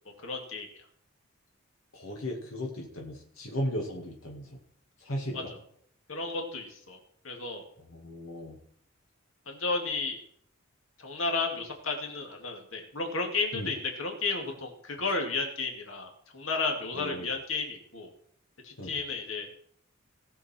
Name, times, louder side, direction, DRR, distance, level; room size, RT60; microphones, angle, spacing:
voice 1, 0.2-0.7 5.3-5.6 6.1-7.0 7.2-7.7 9.5-10.2 11.0-18.1 18.6-19.5, left 3 dB, 70° left, 2 dB, 2.4 m, -33 dB
voice 2, 1.9-4.6 5.0-5.5 7.9-8.6 13.5-13.7 16.9-17.3 18.8-19.0, equal, 90° left, 0 dB, 2.1 m, -36 dB
19.0 x 6.9 x 4.4 m, 0.64 s
head